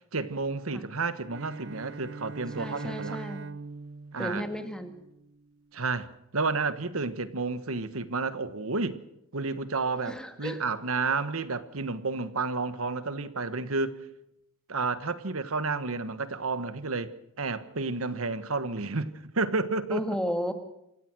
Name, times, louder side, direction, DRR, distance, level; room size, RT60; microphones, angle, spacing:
voice 1, 0.1-3.2 4.1-4.4 5.7-9.0 9.3-14.0 14.7-17.1 17.4-20.1, right 3 dB, 80° right, 1.4 m, -31 dB
Bowed string instrument, 1.3-5.5, right 4 dB, 60° right, 0.7 m, -41 dB
voice 2, 2.6-3.4 4.2-4.9 10.1-10.6 19.9-20.5, equal, 5° left, 1.9 m, -33 dB
27.5 x 16.0 x 6.2 m
head